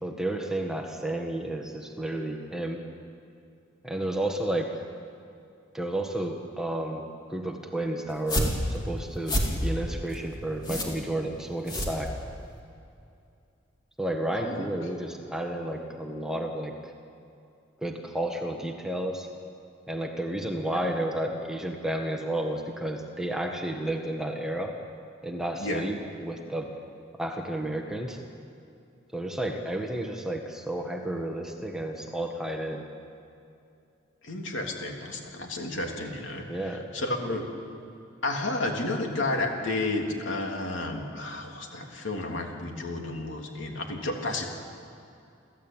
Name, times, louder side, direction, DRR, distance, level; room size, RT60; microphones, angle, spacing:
voice 1, 0.0-2.8 3.8-4.8 5.7-12.2 14.0-16.9 17.8-19.3 19.9-24.8 25.2-26.7 27.2-28.2 29.1-32.9 36.5-36.9, right 1 dB, 5° right, 2 dB, 1.5 m, -32 dB
sound 1, 8.1-12.6, equal, 20° left, 3.3 m, -30 dB
voice 2, 14.3-14.7 25.6-25.8 34.2-37.4 38.2-44.5, left 2 dB, 65° left, 1 dB, 3.3 m, -31 dB
29.0 x 14.5 x 9.0 m, 2.6 s
head